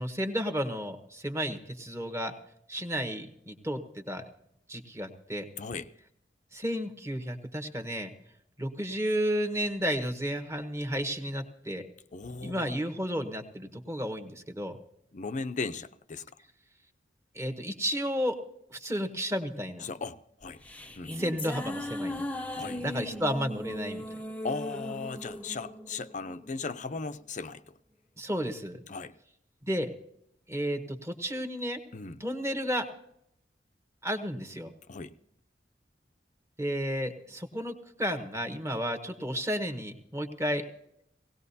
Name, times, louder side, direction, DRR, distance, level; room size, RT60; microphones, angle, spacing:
voice 1, 0.0-2.3 2.7-4.2 4.7-5.4 6.5-8.1 8.6-11.9 12.4-14.8 17.3-18.4 18.7-19.9 21.2-22.2 22.6-24.2 28.2-28.8 29.7-29.9 30.5-31.8 32.2-32.8 34.0-34.7 36.6-40.6, equal, 15° right, 7 dB, 1.2 m, -32 dB
voice 2, 5.6-5.9 12.1-12.7 15.1-16.3 19.8-20.6 21.0-21.1 22.6-22.8 24.4-27.6 28.9-29.1 31.9-32.2 34.9-35.1, left 4 dB, 45° left, 9 dB, 0.6 m, -37 dB
sound 1, 20.4-27.0, left 1 dB, 10° left, 0.7 m, -38 dB
18.5 x 17.5 x 2.8 m, 0.75 s
head